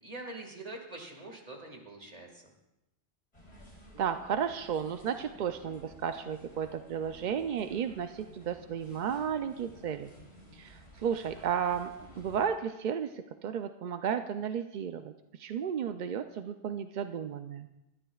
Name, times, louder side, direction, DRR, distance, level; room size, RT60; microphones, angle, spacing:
voice 1, 0.0-2.4, right 2 dB, 35° right, 2 dB, 1.9 m, -44 dB
sound 1, 3.3-12.5, equal, 35° left, 3.5 m, -54 dB
voice 2, 4.0-10.1 10.5-15.1 15.4-17.7, right 8 dB, 60° right, 8 dB, 0.5 m, -33 dB
21.5 x 12.0 x 2.3 m, 0.93 s
omnidirectional pair, 1.2 m